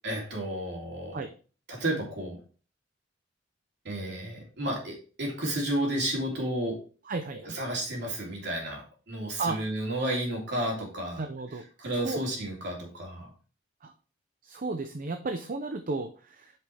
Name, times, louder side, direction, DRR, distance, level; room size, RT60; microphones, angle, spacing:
voice 1, 0.0-1.3 1.7-2.4 3.8-6.8 7.4-11.2 11.8-13.3, right 1 dB, 60° right, -2 dB, 3.3 m, -32 dB
voice 2, 7.1-7.6 9.4-9.6 11.2-11.6 12.0-12.2 13.8-13.9 14.4-16.5, right 3 dB, 45° right, 6 dB, 0.7 m, -33 dB
8.2 x 5.9 x 3.4 m, 0.37 s
head